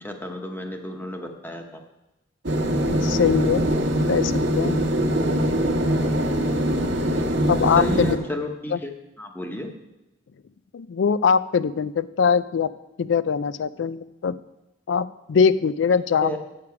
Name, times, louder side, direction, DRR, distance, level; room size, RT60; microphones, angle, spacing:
voice 1, 0.0-1.8 6.7-6.8 7.8-8.9 9.2-9.7 16.2-16.4, left 1 dB, 10° left, 3 dB, 1.0 m, -31 dB
sound 1, 2.4-8.2, equal, 70° right, 1.2 m, -23 dB
voice 2, 2.9-3.7 4.1-4.8 7.5-8.2 8.7-8.8 10.7-12.7 13.0-14.3 14.9-16.4, left 6 dB, 85° left, 16 dB, 0.4 m, -22 dB
8.5 x 6.7 x 5.8 m, 0.94 s
head